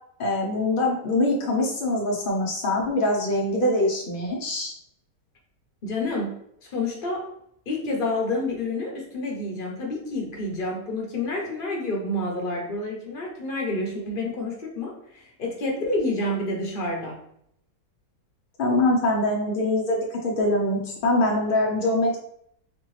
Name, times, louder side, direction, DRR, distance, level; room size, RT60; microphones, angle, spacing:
voice 1, 0.2-4.7 18.6-22.2, left 1 dB, 65° left, -1 dB, 0.5 m, -23 dB
voice 2, 5.8-7.3 7.7-17.2, left 2 dB, 40° left, -1 dB, 0.8 m, -29 dB
3.7 x 3.4 x 3.2 m, 0.71 s
omnidirectional pair, 1.8 m